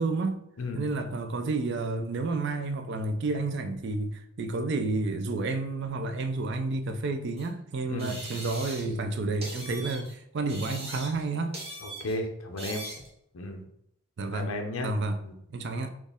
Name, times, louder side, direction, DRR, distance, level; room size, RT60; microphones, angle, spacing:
voice 1, 0.0-0.4 0.7-11.6 14.2-15.2 15.5-15.9, right 3 dB, 50° right, 0.4 m, -30 dB
sound 1, 7.4-7.5 8.0-9.0 9.4-10.1 10.5-11.3 11.5-12.2 12.6-13.1, right 2 dB, 30° right, 0.9 m, -40 dB
voice 2, 11.8-12.8 13.3-13.6 14.3-14.9 15.2-15.3, left 2 dB, 70° left, 0.6 m, -33 dB
4.2 x 2.4 x 3.5 m
head